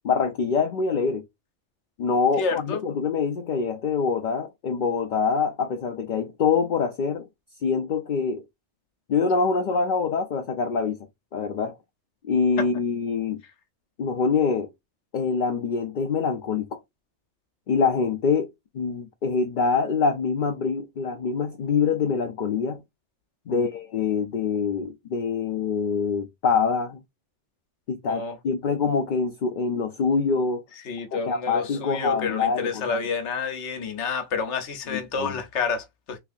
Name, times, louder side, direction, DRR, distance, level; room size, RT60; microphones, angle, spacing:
voice 1, 0.0-1.2 2.0-7.3 7.6-8.4 9.1-11.0 11.3-11.7 12.3-13.4 14.0-14.7 15.1-16.8 17.7-18.5 18.7-22.8 23.5-27.0 27.9-30.6 31.1-33.0 34.9-35.3, left 5 dB, 55° left, 0.6 m, -25 dB
voice 2, 2.4-2.8 12.6-12.7 23.5-23.7 28.1-28.4 30.8-36.2, left 5 dB, 80° left, 1.2 m, -29 dB
3.3 x 3.2 x 2.5 m
omnidirectional pair, 1.2 m